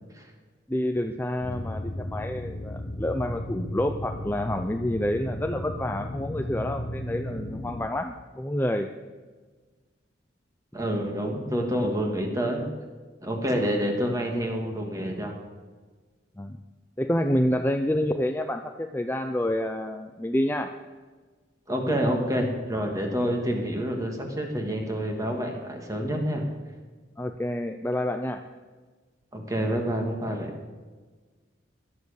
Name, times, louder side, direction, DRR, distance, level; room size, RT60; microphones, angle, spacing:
voice 1, 0.7-8.9 16.4-16.6 17.0-20.7 27.2-28.4, left 1 dB, 10° left, 5 dB, 0.6 m, -28 dB
sound 1, 1.4-7.9, left 1 dB, 50° left, 1.2 m, -35 dB
voice 2, 10.7-12.7 13.2-15.3 21.7-26.4 29.3-30.5, equal, 20° right, 2 dB, 2.7 m, -28 dB
17.0 x 12.0 x 7.0 m, 1.4 s
head